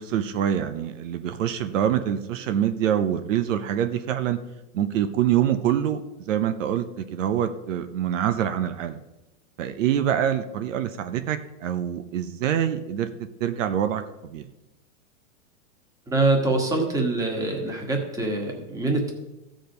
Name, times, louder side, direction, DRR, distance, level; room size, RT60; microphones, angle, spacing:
voice 1, 0.0-4.4 4.7-9.0 9.6-13.1 13.4-14.4, right 10 dB, 70° right, 9 dB, 0.9 m, -25 dB
voice 2, 16.1-19.1, right 2 dB, 10° right, 1 dB, 1.5 m, -24 dB
14.5 x 5.2 x 5.2 m, 0.97 s
supercardioid pair, 150°, 39 cm